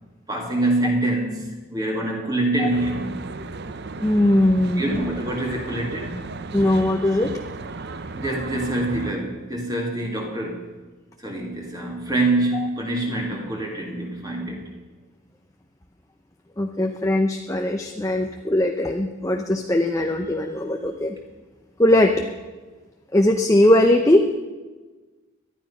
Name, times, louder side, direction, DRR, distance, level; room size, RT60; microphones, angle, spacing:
voice 1, 0.3-3.2 4.8-6.3 8.2-10.7 11.2-14.7, right 2 dB, 20° right, 0 dB, 2.2 m, -25 dB
Traffic noise roadway noise, 2.7-9.1, right 3 dB, 50° right, 0.7 m, -35 dB
voice 2, 4.0-5.0 6.5-7.4 12.5-12.7 16.6-21.2 21.8-22.3 23.1-24.3, left 1 dB, 15° left, 3 dB, 0.7 m, -20 dB
19.0 x 12.0 x 5.6 m, 1.3 s
head